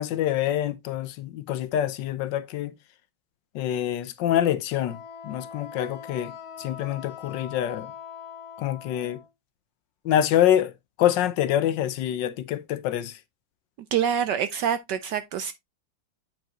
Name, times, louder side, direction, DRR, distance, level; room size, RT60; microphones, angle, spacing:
voice 1, 0.0-2.7 3.5-5.0 5.2-7.9 8.6-9.2 10.0-13.2, left 11 dB, 70° left, 1.3 m, -26 dB
Wind instrument woodwind instrument, 4.8-9.3, left 7 dB, 55° left, 1.5 m, -42 dB
voice 2, 13.9-15.5, right 8 dB, 70° right, 1.1 m, -26 dB
9.1 x 5.1 x 2.9 m
omnidirectional pair, 2.2 m